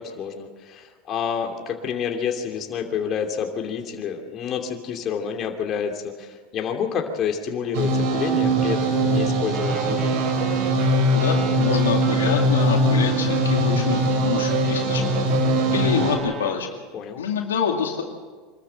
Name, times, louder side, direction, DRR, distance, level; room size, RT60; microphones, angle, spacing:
voice 1, 0.0-10.2 16.9-17.2, left 7 dB, 40° left, 3 dB, 2.7 m, -29 dB
sound 1, 7.7-16.2, right 1 dB, 60° right, 4.3 m, -21 dB
Wind instrument woodwind instrument, 9.5-16.6, right 6 dB, 40° right, 2.6 m, -36 dB
voice 2, 11.1-15.0 15.7-16.7 17.2-18.0, left 7 dB, 90° left, 2 dB, 2.2 m, -26 dB
25.0 x 13.0 x 7.8 m, 1.5 s
hypercardioid pair, 100°, 0 cm